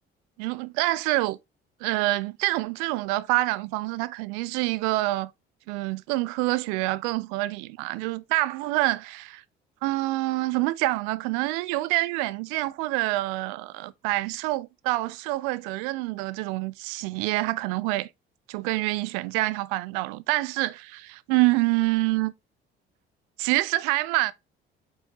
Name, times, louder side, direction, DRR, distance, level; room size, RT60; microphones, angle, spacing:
voice 1, 0.4-1.4 1.8-5.3 5.7-9.4 9.8-18.1 18.5-22.3 23.4-24.3, right 19 dB, 60° right, 0.4 m, -26 dB
4.6 x 4.1 x 2.7 m
figure-of-eight pair, 50°, 29 cm